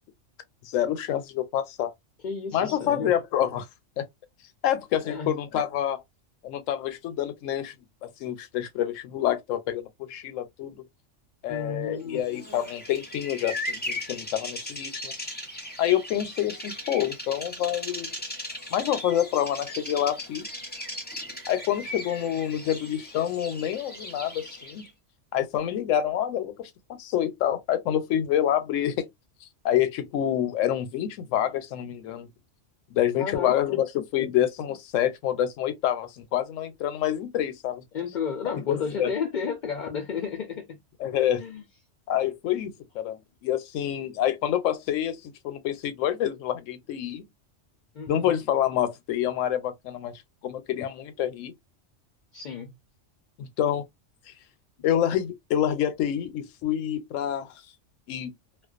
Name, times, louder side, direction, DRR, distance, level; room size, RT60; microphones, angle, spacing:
voice 1, 0.6-1.9 2.5-3.7 4.0-4.1 4.6-6.0 6.4-7.7 8.0-10.8 11.4-15.1 15.8-18.1 18.7-20.5 21.5-24.9 25.3-26.7 27.0-29.1 29.4-32.3 32.9-37.8 38.5-39.1 41.0-41.4 42.1-47.3 48.1-51.5 53.4-53.8 54.3-54.4 54.8-57.5 58.1-58.3, left 11 dB, 85° left, 0.9 m, -27 dB
voice 2, 2.2-3.1 5.0-5.4 11.5-12.2 33.2-33.8 37.9-40.8 41.4-41.6 47.9-48.3 52.3-52.8, left 6 dB, 60° left, 0.5 m, -32 dB
Bird vocalization bird call bird song, 12.2-24.9, left 1 dB, 10° left, 0.6 m, -37 dB
2.4 x 2.2 x 2.4 m
omnidirectional pair, 1.3 m